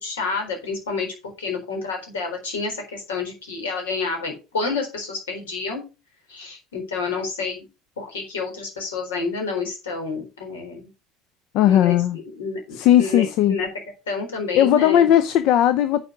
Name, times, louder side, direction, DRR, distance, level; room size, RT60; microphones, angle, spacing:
voice 1, 0.0-5.8 6.3-7.7 8.0-10.9 11.6-13.7 14.1-15.1, left 4 dB, 80° left, 4.0 m, -29 dB
voice 2, 11.5-12.2 12.7-13.6 14.5-16.1, left 11 dB, 60° left, 0.6 m, -17 dB
9.6 x 4.9 x 6.2 m
hypercardioid pair, 70°, 0 cm